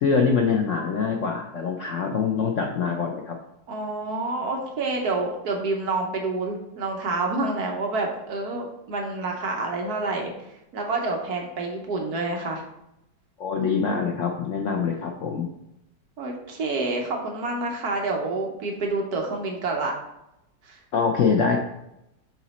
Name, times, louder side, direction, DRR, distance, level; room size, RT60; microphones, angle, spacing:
voice 1, 0.0-3.4 13.4-15.5 20.9-21.6, left 5 dB, 80° left, 2 dB, 0.6 m, -24 dB
voice 2, 3.7-10.3 10.7-12.6 16.2-19.9 20.7-20.8, right 3 dB, 60° right, 1 dB, 1.3 m, -28 dB
7.8 x 3.0 x 4.1 m, 0.86 s
omnidirectional pair, 2.0 m